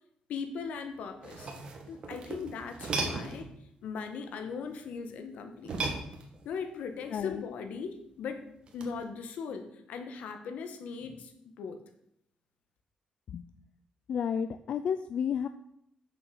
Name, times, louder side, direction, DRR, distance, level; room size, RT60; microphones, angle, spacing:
voice 1, 0.3-1.5 1.9-3.5 3.8-5.8 6.4-8.5 8.7-11.8, left 5 dB, 80° left, 7 dB, 1.4 m, -39 dB
sound 1, 1.1-3.5 5.6-6.6 8.7-9.0, right 3 dB, 45° right, 1.8 m, -36 dB
voice 2, 7.1-7.4 13.3-13.5 14.1-15.5, left 7 dB, 55° left, 10 dB, 0.4 m, -31 dB
8.5 x 7.0 x 6.4 m, 0.74 s
cardioid pair, 155°, 2 cm